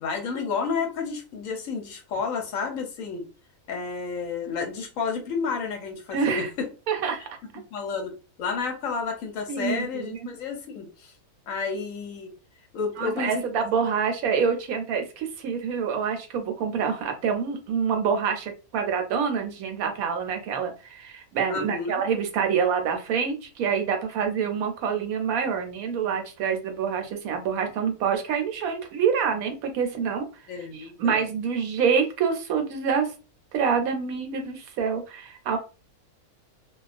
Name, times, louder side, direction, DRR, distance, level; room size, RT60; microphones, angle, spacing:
voice 1, 0.0-3.3 3.7-6.7 7.7-8.1 8.4-11.1 11.5-12.3 12.7-13.4 21.5-22.0 30.5-31.2, left 5 dB, 70° left, 3 dB, 0.9 m, -31 dB
voice 2, 6.1-6.5 6.9-7.3 9.5-10.3 13.0-30.2 30.7-33.1 33.5-35.6, right 6 dB, 75° right, 5 dB, 1.0 m, -26 dB
2.3 x 2.2 x 2.4 m, 0.33 s
omnidirectional pair, 1.6 m